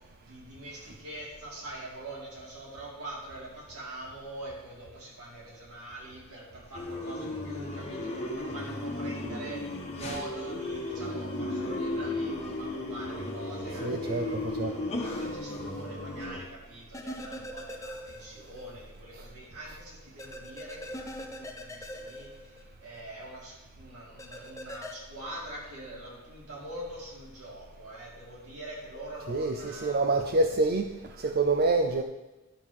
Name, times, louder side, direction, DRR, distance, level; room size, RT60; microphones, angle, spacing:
voice 1, 0.0-14.5 15.0-30.2, right 1 dB, 85° right, -5 dB, 4.3 m, -44 dB
sound 1, 6.7-16.4, left 2 dB, 30° left, 1.5 m, -35 dB
voice 2, 13.8-14.8 29.3-30.9 31.2-32.0, right 3 dB, 45° right, 6 dB, 0.5 m, -26 dB
sound 2, 16.9-18.6 18.9-19.0 20.2-23.0 24.2-24.9, equal, 15° left, 0.9 m, -42 dB
11.5 x 4.8 x 7.3 m, 1.1 s
head